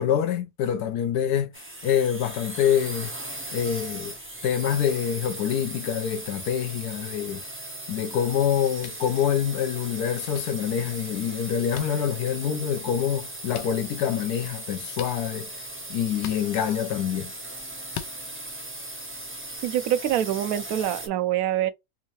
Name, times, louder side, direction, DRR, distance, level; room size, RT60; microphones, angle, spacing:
voice 1, 0.0-3.1 3.5-4.1 4.4-7.4 7.9-15.5 15.9-17.3, left 9 dB, 75° left, 1.0 m, -26 dB
sound 1, 1.5-21.1, right 1 dB, 15° right, 0.4 m, -38 dB
sound 2, 8.8-9.0 10.3-10.4 11.7-11.9 13.5-13.7 14.9-15.2 16.2-16.4 17.9-18.1, left 11 dB, 90° left, 1.2 m, -37 dB
voice 2, 19.6-21.7, right 11 dB, 70° right, 0.9 m, -25 dB
3.6 x 2.6 x 3.0 m
omnidirectional pair, 1.8 m